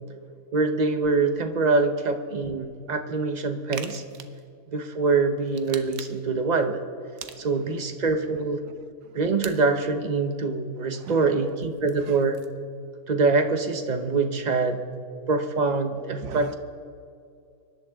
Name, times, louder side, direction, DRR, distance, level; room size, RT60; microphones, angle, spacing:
voice 1, 0.5-4.0 4.7-6.8 7.4-8.6 9.1-12.4 13.1-14.8 15.3-16.5, right 4 dB, 35° right, 7 dB, 0.9 m, -24 dB
sound 1, 3.7-4.4 5.5-6.3 7.2-7.8 9.4-9.6 11.5-12.6, right 8 dB, 65° right, 1.2 m, -41 dB
voice 2, 8.3-9.2 10.9-11.5 12.0-12.2 15.9-16.5, right 10 dB, 90° right, 14 dB, 1.2 m, -42 dB
24.0 x 12.0 x 3.6 m, 2.4 s
omnidirectional pair, 1.7 m